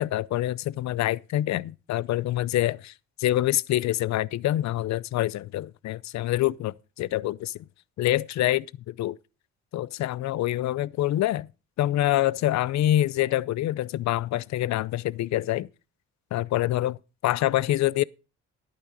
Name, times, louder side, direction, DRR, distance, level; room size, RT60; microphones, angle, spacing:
voice 1, 0.0-2.9 3.2-7.5 8.0-9.2 9.7-11.5 11.8-15.7 16.3-17.0 17.2-18.0, left 14 dB, 65° left, 0.5 m, -26 dB
11.0 x 8.9 x 4.9 m
cardioid pair, 90°, 30 cm